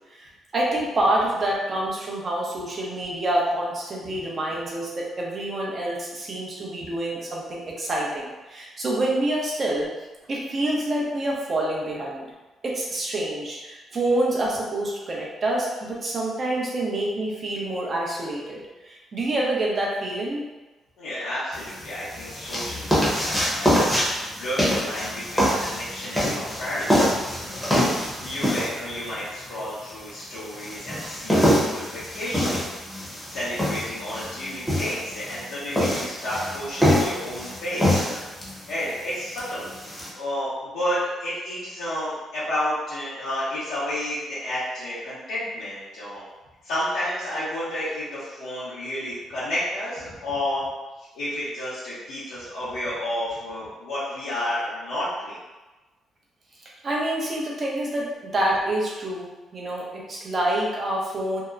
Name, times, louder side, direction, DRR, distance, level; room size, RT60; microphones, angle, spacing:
voice 1, 0.5-9.9 10.3-12.3 12.6-18.6 18.9-20.4 56.8-59.3 59.5-61.4, right 1 dB, 40° right, -3 dB, 0.7 m, -27 dB
voice 2, 21.0-32.7 33.3-38.2 38.7-46.2 46.6-50.7 51.0-55.4, left 1 dB, 85° left, -12 dB, 0.7 m, -31 dB
sound 1, 21.5-40.1, equal, 5° left, 0.8 m, -25 dB
2.8 x 2.0 x 2.4 m, 1.1 s
cardioid pair, 90°, 0 cm